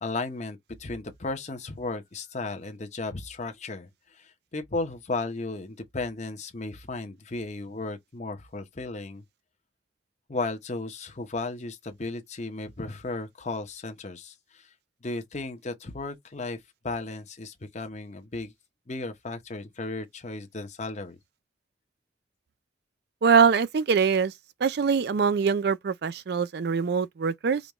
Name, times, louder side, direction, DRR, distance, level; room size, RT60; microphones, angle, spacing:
voice 1, 0.0-9.2 10.3-14.7 15.0-18.5 18.9-21.2, left 3 dB, 35° left, 0.8 m, -35 dB
voice 2, 23.2-24.3 24.6-27.6, right 6 dB, 55° right, 0.4 m, -23 dB
5.1 x 2.3 x 3.0 m
head